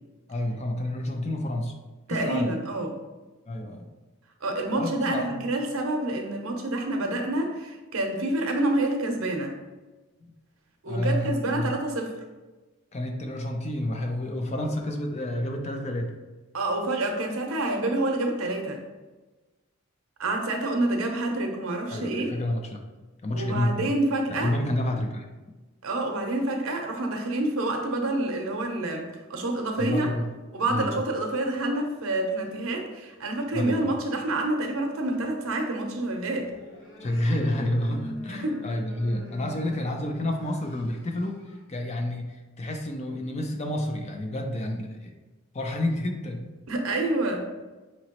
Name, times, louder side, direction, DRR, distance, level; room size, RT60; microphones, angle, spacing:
voice 1, 0.3-1.7 2.1-2.6 3.5-3.9 4.8-5.4 10.9-11.7 12.9-16.2 21.9-22.8 23.2-23.9 24.3-25.3 29.8-30.3 30.7-31.0 33.5-33.9 37.0-41.4 41.7-45.1 45.5-46.5, left 1 dB, 30° left, 3 dB, 0.4 m, -29 dB
voice 2, 2.1-2.9 4.4-9.5 10.8-12.1 16.5-18.8 20.2-22.3 23.3-24.5 25.8-30.1 30.5-36.5 38.4-38.6 46.7-47.5, right 2 dB, 75° right, 3 dB, 0.7 m, -28 dB
sound 1, 36.4-41.6, left 1 dB, 55° left, 1.1 m, -43 dB
5.1 x 3.0 x 2.9 m, 1.2 s
head